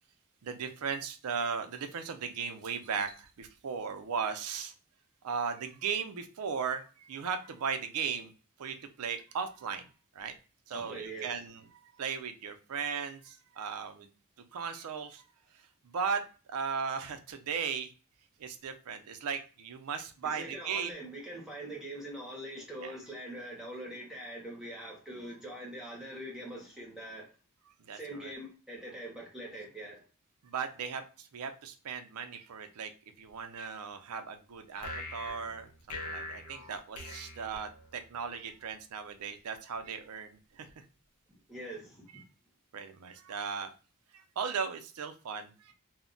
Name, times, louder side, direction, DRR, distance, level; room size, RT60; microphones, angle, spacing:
voice 1, 0.4-4.7 5.2-8.3 8.6-9.9 10.1-10.3 10.7-11.6 12.0-14.1 14.5-15.2 15.8-16.2 16.5-17.9 18.4-20.9 22.8-22.9 27.9-28.3 30.4-32.9 33.2-40.8 42.7-43.7 44.1-45.7, right 6 dB, 75° right, 0.4 m, -37 dB
voice 2, 10.7-11.5 20.2-27.3 27.9-30.0 41.5-42.2, right 1 dB, ahead, 0.7 m, -43 dB
sound 1, 34.8-38.2, left 2 dB, 80° left, 0.6 m, -43 dB
2.2 x 2.1 x 3.7 m
head